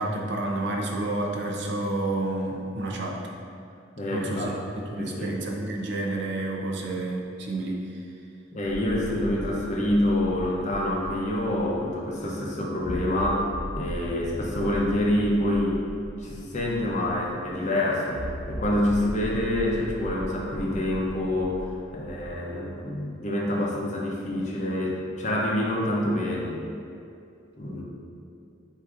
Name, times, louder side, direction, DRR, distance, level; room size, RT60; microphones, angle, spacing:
voice 1, 0.0-3.2 4.1-7.8, right 2 dB, 65° right, 0 dB, 0.6 m, -30 dB
voice 2, 4.0-4.5 5.0-5.4 8.5-15.8 16.2-26.6 27.6-27.8, left 1 dB, 40° left, -3 dB, 0.7 m, -27 dB
sound 1, 8.7-11.9 12.2-12.3 12.8-17.3 18.1-22.4, equal, 5° right, 0.8 m, -38 dB
7.8 x 2.6 x 2.5 m, 2.4 s
head